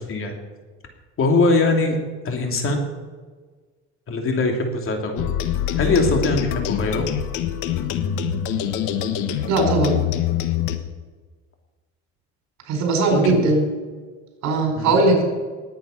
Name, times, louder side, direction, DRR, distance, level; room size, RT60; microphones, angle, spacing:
voice 1, 1.2-2.0 2.2-2.8 4.1-5.2 5.8-7.1 13.1-13.4 14.8-15.0, left 2 dB, 45° left, 3 dB, 3.0 m, -21 dB
sound 1, 5.2-10.8, left 10 dB, 80° left, 1.3 m, -24 dB
voice 2, 9.5-10.0 12.7-13.6 14.4-15.2, right 3 dB, 65° right, 3 dB, 4.6 m, -19 dB
20.0 x 8.7 x 5.8 m, 1.4 s
cardioid pair, 110°, 30 cm